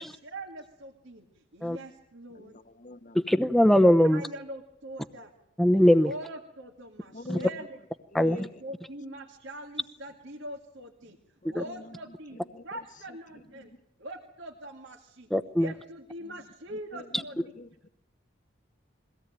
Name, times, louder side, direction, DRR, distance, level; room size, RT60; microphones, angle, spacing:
voice 1, 0.3-2.6 4.1-5.3 6.0-7.7 8.3-11.2 11.5-13.7 14.0-15.3 15.6-17.4, right 1 dB, 75° right, 2.2 m, -42 dB
voice 2, 2.3-3.2 7.1-7.7 8.1-8.6 11.0-11.2 11.4-12.6 13.3-13.8 16.2-16.4 16.7-17.9, left 2 dB, 40° left, 1.0 m, -46 dB
voice 3, 3.1-4.2 5.6-6.1 7.3-7.4 8.1-8.5 11.5-11.6 15.3-15.7, equal, ahead, 0.8 m, -21 dB
23.0 x 17.5 x 9.1 m
head